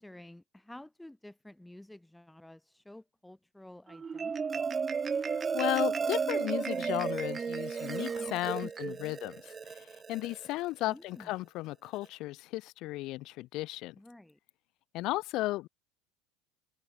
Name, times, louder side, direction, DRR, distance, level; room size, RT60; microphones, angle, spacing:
voice 1, 0.0-4.7 8.6-9.2 10.9-11.3 13.9-14.4, left 1 dB, 5° left, 7.4 m, -51 dB
Marimba xylophone, 3.9-10.5, right 5 dB, 25° right, 0.4 m, -33 dB
voice 2, 5.3-13.9 14.9-15.7, left 18 dB, 50° left, 1.2 m, -35 dB
figure-of-eight pair, 75°, 0 cm